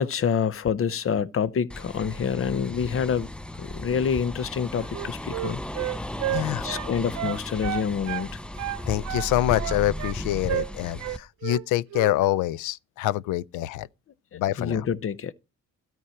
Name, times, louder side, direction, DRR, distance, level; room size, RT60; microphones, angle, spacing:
voice 1, 0.0-3.3 3.6-6.1 6.4-8.4 14.3-15.3, left 7 dB, 45° left, 0.8 m, -27 dB
sound 1, 1.7-11.2, left 1 dB, 5° left, 0.5 m, -35 dB
Wind instrument woodwind instrument, 4.8-8.3 8.6-10.2 10.5-10.7 11.0-11.6 11.9-12.2, right 15 dB, 65° right, 0.5 m, -31 dB
voice 2, 6.3-6.7 8.9-13.9 14.3-14.8, left 15 dB, 90° left, 0.5 m, -26 dB
13.0 x 4.6 x 5.7 m
cardioid pair, 90°, 30 cm